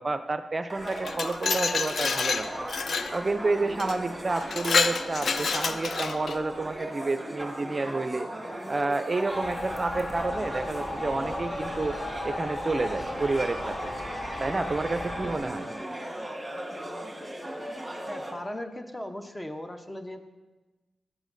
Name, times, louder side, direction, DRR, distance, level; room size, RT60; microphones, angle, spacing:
voice 1, 0.0-2.5 3.1-8.3 8.7-11.9 12.2-13.9 14.4-15.7, right 3 dB, 40° right, 10 dB, 0.4 m, -29 dB
sound 1, 0.7-18.3, right 1 dB, 15° right, 1.5 m, -37 dB
Glass, 0.9-3.1 3.8-4.0 4.4-6.4, left 5 dB, 70° left, 0.3 m, -28 dB
sound 2, 9.3-15.4, left 2 dB, 55° left, 2.1 m, -36 dB
voice 2, 18.1-20.2, left 1 dB, 20° left, 6 dB, 0.8 m, -38 dB
10.5 x 8.0 x 2.6 m, 1.2 s
supercardioid pair, 45°, 0 cm